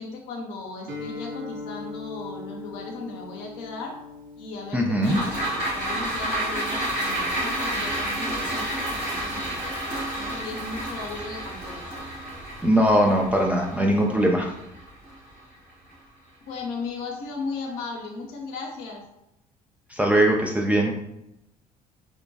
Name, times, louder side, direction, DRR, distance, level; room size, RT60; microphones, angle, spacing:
voice 1, 0.0-4.0 4.4-9.9 10.1-11.8 16.5-19.0, left 3 dB, 60° left, 0 dB, 0.6 m, -36 dB
Guitar, 0.9-8.6, left 3 dB, 45° right, 0.7 m, -41 dB
voice 2, 4.7-5.2 12.6-14.5 19.9-20.9, right 1 dB, 5° right, -1 dB, 0.3 m, -20 dB
sound 1, 5.0-15.5 15.9-16.0, right 1 dB, 90° right, 1.4 m, -30 dB
3.1 x 2.1 x 2.7 m, 0.84 s
figure-of-eight pair, 55°, 20 cm